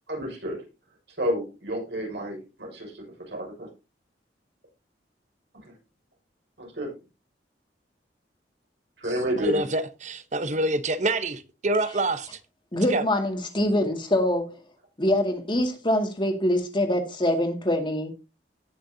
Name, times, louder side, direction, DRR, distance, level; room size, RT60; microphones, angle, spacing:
voice 1, 0.1-0.6 1.2-3.7 5.6-5.7 6.6-6.9 9.0-9.6, equal, 75° right, 6.1 m, -30 dB
voice 2, 9.4-12.4 12.9-13.0, right 2 dB, 45° right, 1.0 m, -26 dB
voice 3, 12.7-14.6 15.0-18.1, left 1 dB, 25° left, 2.2 m, -24 dB
18.0 x 6.5 x 2.8 m
head